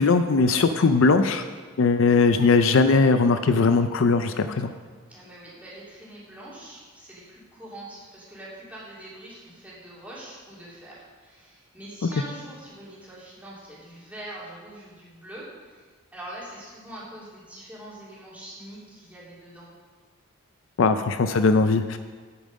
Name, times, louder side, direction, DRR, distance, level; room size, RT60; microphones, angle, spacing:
voice 1, 0.0-1.5 1.8-4.7 20.8-22.0, left 4 dB, 60° left, 9 dB, 0.4 m, -19 dB
voice 2, 5.1-19.7, right 1 dB, 5° right, -8 dB, 2.9 m, -43 dB
9.1 x 8.6 x 5.2 m, 1.5 s
head